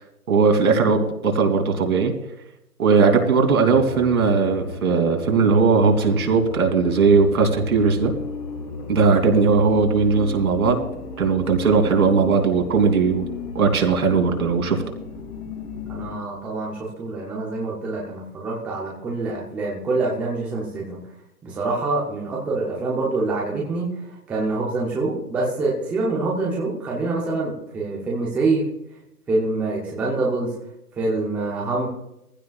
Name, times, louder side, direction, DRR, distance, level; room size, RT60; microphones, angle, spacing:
voice 1, 0.3-2.1 2.8-8.1 8.9-10.8 11.2-13.2 13.5-14.8, right 4 dB, 65° right, 3 dB, 3.1 m, -18 dB
sound 1, 3.7-16.2, left 3 dB, 25° left, 2.1 m, -34 dB
voice 2, 15.9-21.0 21.4-28.6 29.3-30.5 31.0-31.9, right 3 dB, 5° right, -4 dB, 0.7 m, -25 dB
19.5 x 15.5 x 2.4 m, 0.85 s
hypercardioid pair, 150°, 46 cm